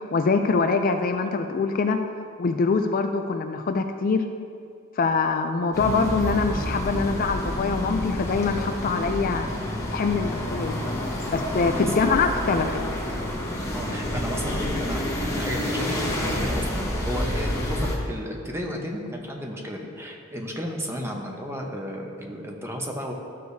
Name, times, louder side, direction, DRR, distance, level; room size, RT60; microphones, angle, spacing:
voice 1, 0.0-2.0 2.4-4.2 5.0-9.5 9.9-10.8 11.3-12.7, left 4 dB, 45° left, 7 dB, 0.4 m, -24 dB
sound 1, 5.7-18.0, left 1 dB, 15° left, 1.3 m, -29 dB
voice 2, 11.6-12.1 13.7-23.1, equal, 10° right, 1 dB, 0.9 m, -33 dB
13.0 x 6.6 x 2.7 m, 2.3 s
head